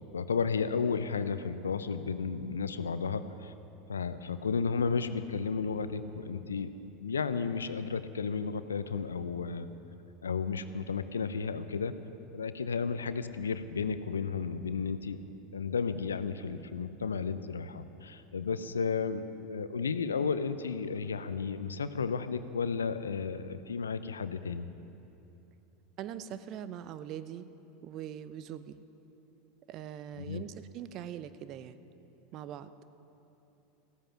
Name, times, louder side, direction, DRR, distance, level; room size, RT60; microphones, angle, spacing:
voice 1, 0.1-3.5 3.9-6.7 7.0-9.7 10.2-11.9 12.3-15.2 15.5-24.7 30.2-30.4, left 5 dB, 80° left, 12 dB, 0.6 m, -33 dB
voice 2, 26.0-27.5 27.8-28.8 29.7-31.8 32.3-32.7, right 10 dB, 45° right, 13 dB, 0.7 m, -42 dB
15.5 x 14.0 x 5.7 m, 2.9 s
figure-of-eight pair, 80°, 0 cm